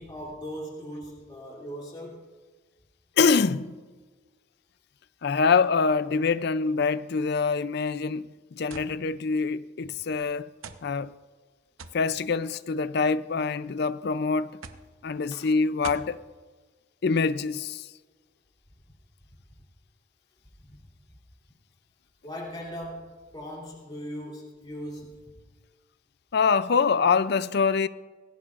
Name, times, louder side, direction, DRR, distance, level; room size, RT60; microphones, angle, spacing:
voice 1, 0.0-2.3 15.3-15.5 20.7-20.8 22.2-25.2, equal, 20° left, 3.0 m, -39 dB
voice 2, 3.2-3.8 5.2-10.5 10.8-11.1 11.9-14.6 15.0-16.2 17.0-17.9 26.3-27.9, left 5 dB, 55° left, 0.4 m, -25 dB
sound 1, 8.7-8.9 9.8-9.9 10.6-10.9 11.8-12.0 13.0-13.5 14.6-14.9 15.8-16.1, right 5 dB, 90° right, 0.9 m, -42 dB
20.0 x 17.0 x 2.5 m
head